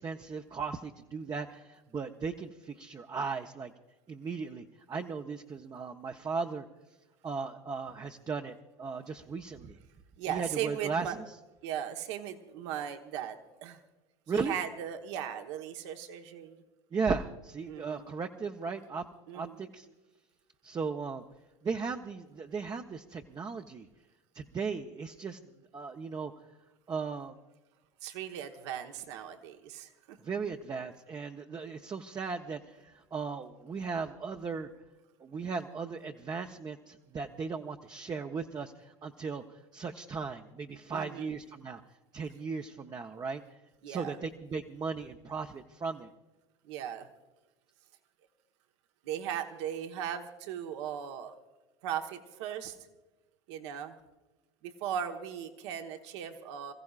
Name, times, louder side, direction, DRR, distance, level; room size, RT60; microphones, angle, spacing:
voice 1, 0.0-3.7 4.1-6.6 7.2-8.5 8.8-9.8 10.3-11.2 14.3-14.5 16.9-19.0 19.3-19.9 20.6-21.2 21.6-23.9 24.3-25.4 25.7-26.3 26.9-27.3 30.2-34.7 35.2-38.7 39.0-39.4 39.7-41.8 42.1-43.4 43.9-46.1, right 5 dB, 25° right, 3 dB, 0.8 m, -36 dB
voice 2, 10.2-11.2 11.6-13.8 14.3-16.6 17.7-18.1 19.3-19.6 28.0-30.2 40.9-41.4 43.8-44.2 46.6-47.1 49.0-51.3 51.8-52.8 53.5-53.9 54.6-56.7, right 9 dB, 70° right, 5 dB, 1.3 m, -38 dB
27.5 x 15.0 x 2.5 m, 1.1 s
hypercardioid pair, 80°, 15 cm